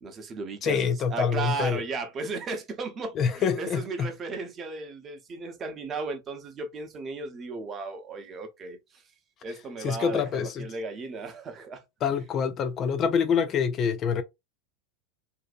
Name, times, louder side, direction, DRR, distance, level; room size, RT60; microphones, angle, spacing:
voice 1, 0.0-8.8 9.4-11.8, right 4 dB, 30° right, 0.7 m, -35 dB
voice 2, 0.6-1.8 3.1-4.1 9.8-10.7 12.0-14.2, left 6 dB, 35° left, 0.4 m, -26 dB
2.6 x 2.1 x 2.4 m
hypercardioid pair, 105°, 0 cm